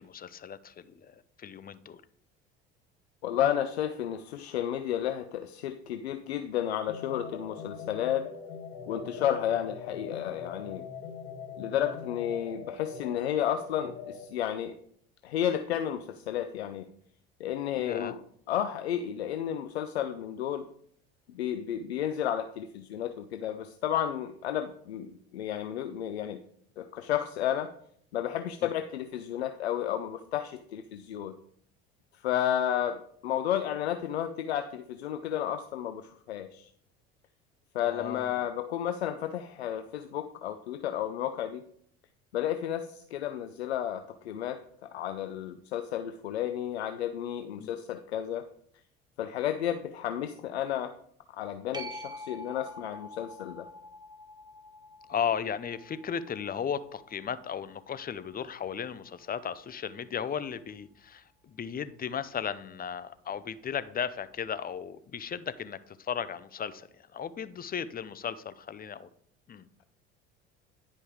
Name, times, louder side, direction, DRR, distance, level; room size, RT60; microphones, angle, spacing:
voice 1, 0.0-2.0 17.8-18.2 28.6-28.7 37.8-38.5 47.6-47.7 55.1-69.1 69.5-69.7, left 7 dB, 30° left, 14 dB, 0.7 m, -36 dB
voice 2, 3.2-8.3 8.9-10.8 11.6-14.8 15.2-16.9 17.4-18.2 18.5-20.7 21.3-26.4 26.8-27.7 28.1-31.3 32.2-36.7 37.7-41.6 42.3-44.6 44.9-48.5 49.2-51.0 51.3-53.7, left 10 dB, 85° left, 9 dB, 0.6 m, -32 dB
sound 1, 6.9-14.2, left 6 dB, 70° left, 1.8 m, -42 dB
sound 2, 51.7-58.9 64.4-64.5, left 1 dB, 15° right, 1.4 m, -47 dB
10.5 x 5.3 x 4.9 m, 0.64 s
hypercardioid pair, 70°, 31 cm